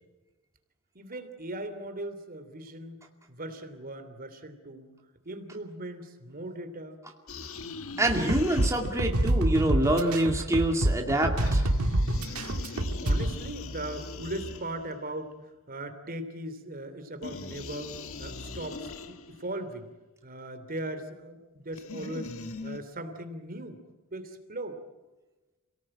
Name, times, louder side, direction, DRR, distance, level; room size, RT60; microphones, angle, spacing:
voice 1, 0.9-3.0 3.3-4.9 5.2-7.0 13.0-15.3 15.7-19.9 20.2-22.3 22.6-23.8 24.1-24.8, right 1 dB, 45° right, 8 dB, 3.0 m, -39 dB
sound 1, 7.3-9.2 11.4-15.1 17.2-19.5 21.7-22.8, left 3 dB, 65° left, 1.7 m, -40 dB
voice 2, 8.0-11.7, right 1 dB, 15° right, 1 dB, 2.4 m, -26 dB
sound 2, 8.1-13.3, right 1 dB, 85° right, 1.8 m, -26 dB
28.5 x 18.5 x 8.9 m, 1.2 s
head